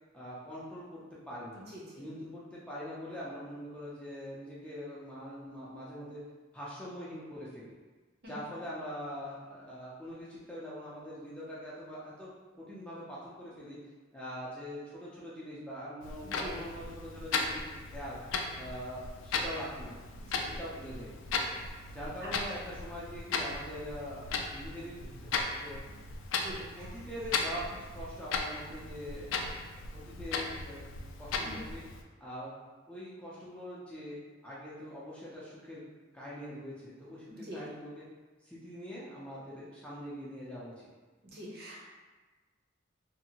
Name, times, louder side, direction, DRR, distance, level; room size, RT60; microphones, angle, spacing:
voice 1, 0.1-1.0 1.3-1.6 2.0-6.2 6.5-7.7 8.3-12.3 12.6-13.8 14.1-18.2 18.5-19.9 20.4-21.1 21.9-25.8 26.8-29.3 29.9-30.9 31.2-31.8 32.2-32.5 32.9-34.2 34.4-35.8 36.1-38.0 38.4-40.9, equal, 5° left, -8 dB, 0.4 m, -43 dB
voice 2, 1.7-2.0 8.2-8.3 16.2-16.6 20.3-20.5 26.4-26.9 31.4-31.6 37.3-37.6 41.3-41.8, equal, 50° right, -5 dB, 0.7 m, -45 dB
Clock, 16.0-32.0, left 4 dB, 70° left, 0.3 m, -37 dB
2.6 x 2.5 x 2.8 m, 1.3 s
head